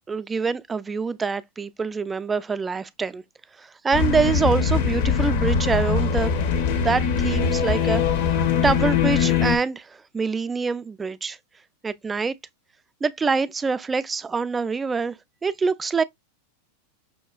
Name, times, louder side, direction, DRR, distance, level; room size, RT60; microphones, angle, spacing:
voice 1, 0.1-3.2 3.6-6.3 6.8-8.0 8.6-11.4 11.8-12.3 13.0-15.2 15.4-16.0, right 4 dB, 15° right, 0.3 m, -25 dB
sound 1, 3.9-9.6, left 6 dB, 60° left, 0.6 m, -22 dB
5.6 x 2.3 x 2.2 m
hypercardioid pair, 100°, 0 cm